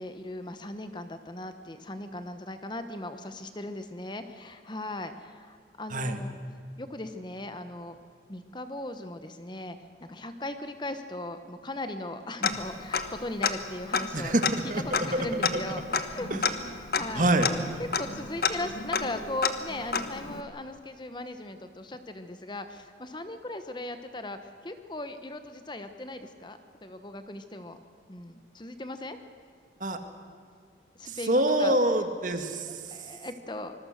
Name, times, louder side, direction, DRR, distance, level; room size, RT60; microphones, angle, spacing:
voice 1, 0.0-6.3 6.8-7.9 8.3-14.3 14.9-16.3 16.9-17.3 17.8-27.8 28.1-29.2 31.0-31.8 32.3-32.4 32.9-33.7, left 1 dB, 25° left, 9 dB, 1.0 m, -38 dB
Tick-tock, 12.4-13.2 13.4-13.5 13.9-20.4, left 5 dB, 55° left, 1.3 m, -30 dB
voice 2, 14.1-15.6 16.3-16.4 17.1-17.5 29.8-30.0 31.1-32.8, right 1 dB, 45° right, 7 dB, 1.7 m, -26 dB
26.0 x 21.0 x 6.5 m, 2.1 s
head